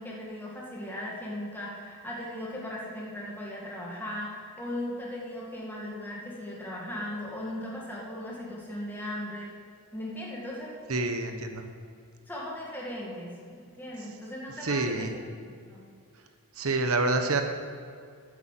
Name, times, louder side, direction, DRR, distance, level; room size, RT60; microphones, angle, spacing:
voice 1, 0.0-9.5 9.9-10.7 12.3-15.1 15.4-15.8, left 1 dB, 10° left, -5 dB, 2.1 m, -38 dB
voice 2, 10.9-11.7 14.6-15.1 16.6-17.4, right 3 dB, 70° right, 6 dB, 1.1 m, -27 dB
9.6 x 8.6 x 7.5 m, 2.2 s
head